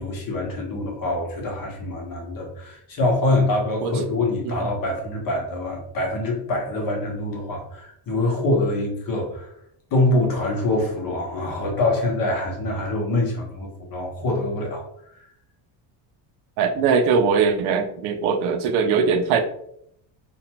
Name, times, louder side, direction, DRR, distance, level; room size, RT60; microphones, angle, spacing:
voice 1, 0.0-9.5 9.9-14.8, left 2 dB, 45° left, 0 dB, 0.9 m, -25 dB
voice 2, 16.6-19.4, right 5 dB, 75° right, 6 dB, 0.6 m, -21 dB
2.5 x 2.3 x 2.9 m, 0.72 s
cardioid pair, 125°, 49 cm